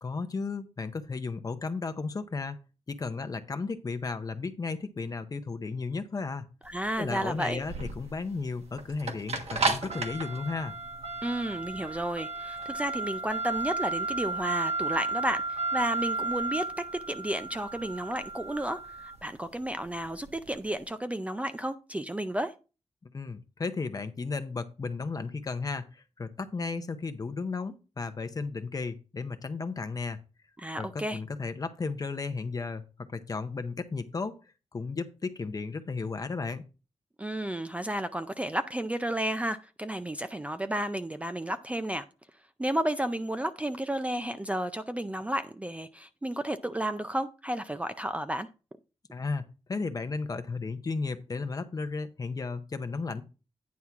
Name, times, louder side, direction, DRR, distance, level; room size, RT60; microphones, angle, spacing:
voice 1, 0.0-2.6 2.9-6.4 7.0-10.7 23.1-30.2 30.7-34.4 34.7-36.6 49.1-49.4 49.7-53.2, left 4 dB, 35° left, 0.7 m, -34 dB
sound 1, 6.6-20.8, right 3 dB, 65° right, 1.5 m, -33 dB
voice 2, 6.7-7.6 11.2-22.5 30.6-31.2 37.2-42.1 42.6-48.5, right 1 dB, 10° right, 0.4 m, -32 dB
9.5 x 3.6 x 5.8 m
wide cardioid pair, 155°, 11 cm